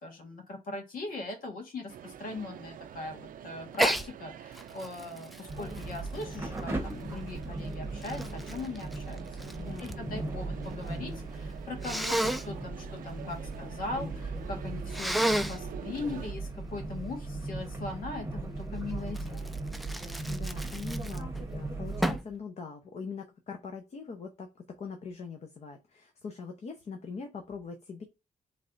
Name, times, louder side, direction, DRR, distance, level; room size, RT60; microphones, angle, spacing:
voice 1, 0.0-19.5, left 2 dB, 85° left, 3 dB, 1.7 m, -40 dB
sound 1, 1.9-16.3, right 10 dB, 80° right, 0.4 m, -47 dB
Sneeze, 3.7-4.1 4.5-6.9 7.6-10.0 10.3-11.0 11.8-12.5 14.9-15.6 19.1-21.4 22.0-22.3, right 1 dB, ahead, 0.3 m, -32 dB
sound 2, 5.5-22.2, right 2 dB, 15° right, 0.9 m, -38 dB
voice 2, 9.6-10.1 20.3-28.0, left 5 dB, 50° left, 4 dB, 0.7 m, -42 dB
4.1 x 3.3 x 3.9 m, 0.26 s
wide cardioid pair, 150°, 14 cm